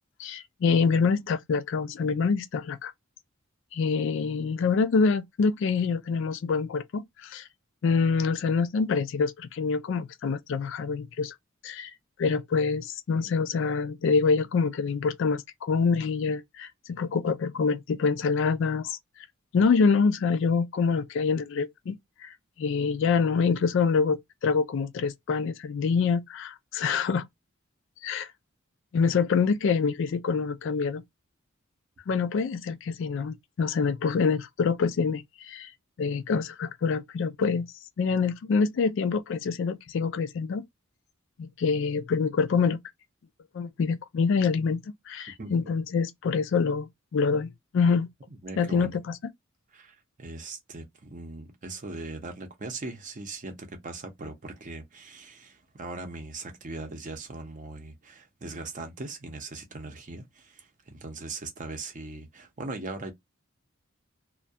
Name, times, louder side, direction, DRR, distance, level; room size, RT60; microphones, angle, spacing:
voice 1, 0.2-2.9 3.7-7.5 7.8-11.3 11.6-11.9 12.2-19.0 19.5-22.0 22.2-27.2 28.0-28.3 28.9-31.0 32.1-35.7 36.0-37.7 38.0-40.7 41.4-42.8 43.5-48.1 48.6-49.2, left 5 dB, 65° left, 0.3 m, -26 dB
voice 2, 45.4-45.7 48.3-49.0 49.7-63.1, right 3 dB, 40° right, 0.6 m, -40 dB
2.2 x 2.1 x 2.6 m
head